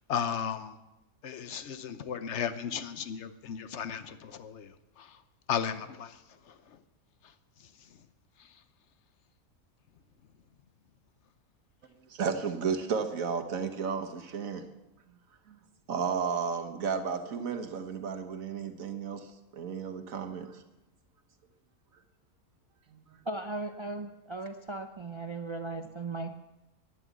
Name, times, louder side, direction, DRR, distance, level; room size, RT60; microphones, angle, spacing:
voice 1, 0.1-0.7 1.2-4.7 5.0-5.1 5.5-6.2 6.5-6.6, left 7 dB, 60° left, 1.0 m, -34 dB
voice 2, 12.1-14.6 15.5-15.6 15.9-20.6 22.9-23.2, right 6 dB, 70° right, 1.6 m, -33 dB
voice 3, 23.3-26.4, right 2 dB, 35° right, 0.5 m, -37 dB
11.5 x 11.0 x 8.2 m
omnidirectional pair, 1.5 m